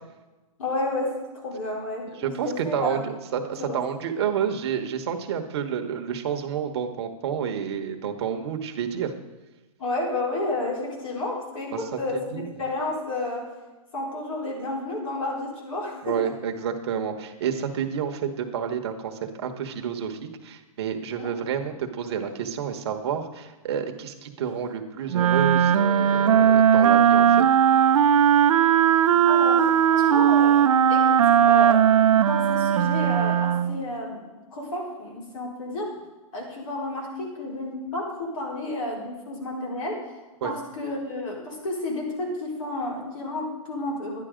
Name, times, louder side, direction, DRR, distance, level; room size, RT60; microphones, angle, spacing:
voice 1, 0.6-3.1 3.6-3.8 9.8-13.5 13.9-16.3 21.1-21.3 29.3-35.9 36.3-40.0 40.4-44.2, left 2 dB, 65° left, -2 dB, 4.4 m, -31 dB
voice 2, 2.2-9.1 11.7-11.8 12.1-12.5 16.0-27.5 40.4-40.5, right 8 dB, 45° right, 5 dB, 1.1 m, -29 dB
Wind instrument woodwind instrument, 25.1-33.8, right 9 dB, 65° right, 0.6 m, -18 dB
11.5 x 10.5 x 5.0 m, 1.1 s
hypercardioid pair, 165°, 18 cm